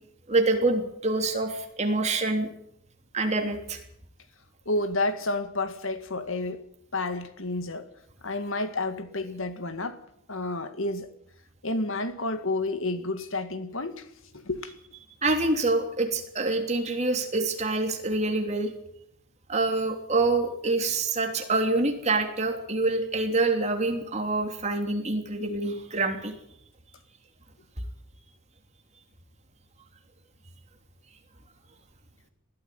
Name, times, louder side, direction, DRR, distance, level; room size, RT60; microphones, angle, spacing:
voice 1, 0.3-2.5 3.1-3.8 15.2-18.7 19.5-26.3, right 2 dB, 30° right, 3.3 m, -26 dB
voice 2, 4.7-6.7 6.9-7.9 8.2-10.0 10.3-11.1 11.6-14.1 14.3-14.7, left 2 dB, 65° left, 2.0 m, -30 dB
20.5 x 14.0 x 9.4 m
head